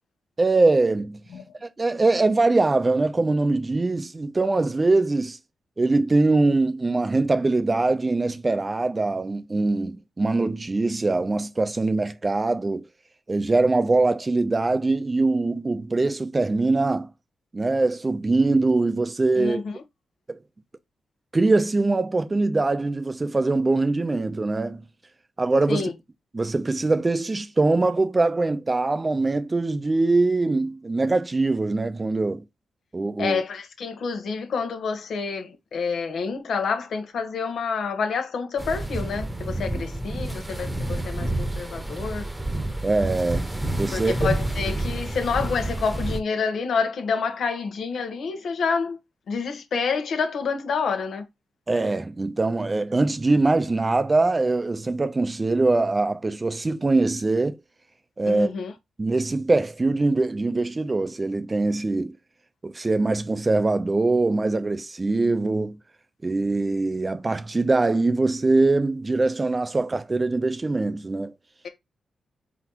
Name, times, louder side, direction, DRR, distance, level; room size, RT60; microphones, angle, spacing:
voice 1, 0.4-1.2 1.6-5.4 5.8-12.9 13.3-17.1 17.5-19.6 20.3-20.4 21.3-24.8 25.4-25.9 26.3-32.4 32.9-33.4 42.8-44.1 51.7-57.6 58.2-58.5 59.0-62.1 62.6-65.8 66.2-71.3, right 3 dB, 30° right, 0.6 m, -22 dB
voice 2, 19.4-19.8 25.7-25.9 33.2-42.2 43.9-49.0 49.3-51.2 58.3-58.7 71.6-71.7, left 5 dB, 75° left, 1.1 m, -28 dB
sound 1, 38.6-46.2, right 1 dB, 15° right, 1.0 m, -29 dB
4.0 x 3.9 x 3.0 m
supercardioid pair, 55°, 0 cm